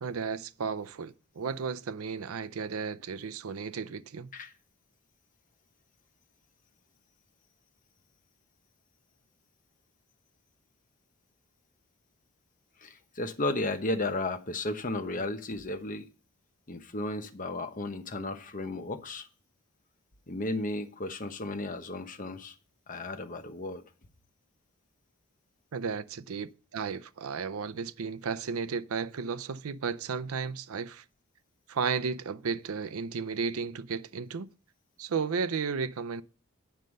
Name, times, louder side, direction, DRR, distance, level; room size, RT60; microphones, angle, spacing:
voice 1, 0.0-4.3 25.7-31.0 31.7-34.5 35.0-36.2, right 5 dB, 85° right, 0.5 m, -34 dB
voice 2, 12.8-16.1 16.7-19.3 20.3-22.5 22.9-23.8, left 2 dB, 40° left, 1.0 m, -34 dB
9.6 x 5.4 x 6.3 m
head